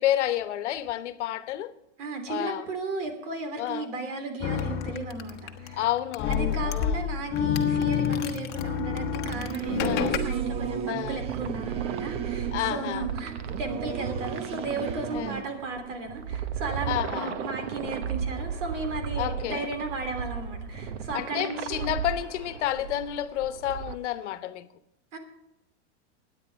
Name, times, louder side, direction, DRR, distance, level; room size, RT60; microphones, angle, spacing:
voice 1, 0.0-1.7 2.3-2.6 3.6-3.9 5.7-7.0 9.8-10.2 10.9-11.2 12.5-13.1 15.1-15.4 16.8-17.4 19.2-19.7 21.1-24.7, left 12 dB, 75° left, 1.1 m, -30 dB
voice 2, 2.0-5.8 6.3-22.0 25.1-25.2, right 3 dB, 85° right, 3.1 m, -35 dB
sound 1, 4.4-10.2, left 8 dB, 25° left, 1.0 m, -28 dB
Singing / Musical instrument, 9.2-15.4, right 8 dB, 15° right, 0.4 m, -35 dB
sound 2, 9.6-24.0, right 7 dB, 60° right, 1.0 m, -35 dB
22.0 x 9.6 x 3.4 m
supercardioid pair, 145°, 36 cm